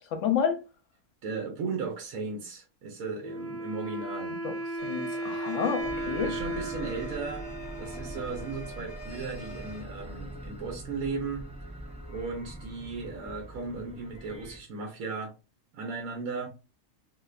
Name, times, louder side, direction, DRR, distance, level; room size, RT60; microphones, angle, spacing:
voice 1, 0.1-0.6 4.4-4.5 4.8-6.3, left 7 dB, 65° left, 1.0 m, -29 dB
voice 2, 1.2-4.4 6.2-7.5 7.8-11.5 12.1-15.3 15.7-16.5, right 4 dB, 80° right, 1.2 m, -36 dB
Wind instrument woodwind instrument, 3.2-8.7, right 1 dB, 40° right, 1.1 m, -36 dB
sound 1, 4.8-9.8, right 4 dB, 40° left, 1.0 m, -46 dB
sound 2, 5.8-14.6, right 1 dB, 10° right, 0.4 m, -42 dB
3.2 x 2.8 x 2.4 m
omnidirectional pair, 1.5 m